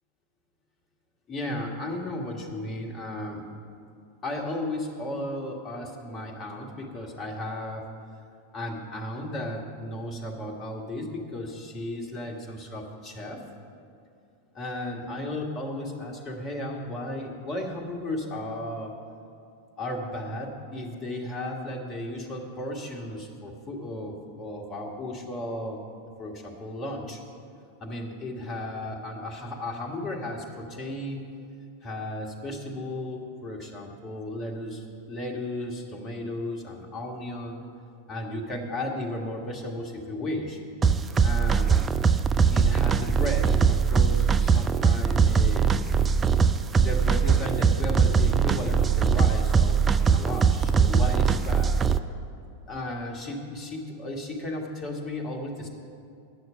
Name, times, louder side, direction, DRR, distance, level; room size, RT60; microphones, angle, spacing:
voice 1, 1.3-3.4 4.2-7.9 8.5-13.4 14.5-19.0 19.8-25.8 26.2-27.2 27.8-31.2 31.8-37.6 38.1-40.6 41.2-41.8 42.5-45.7 46.7-51.7 52.7-55.7, left 1 dB, 25° left, 1 dB, 1.6 m, -34 dB
sound 1, 40.8-52.0, right 6 dB, 20° right, 0.4 m, -21 dB
9.8 x 6.5 x 8.7 m, 2.5 s
figure-of-eight pair, 90°, 0 cm